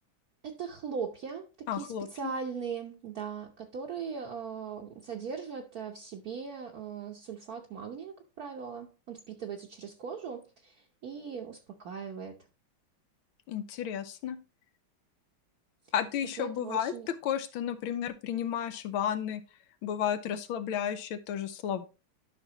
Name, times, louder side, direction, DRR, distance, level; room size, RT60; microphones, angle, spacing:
voice 1, 0.4-12.4 16.2-17.1, right 6 dB, 55° right, 1.1 m, -39 dB
voice 2, 1.7-2.3 13.5-14.4 15.9-19.4 19.8-21.9, left 9 dB, 80° left, 1.6 m, -32 dB
11.0 x 5.8 x 2.9 m
omnidirectional pair, 2.3 m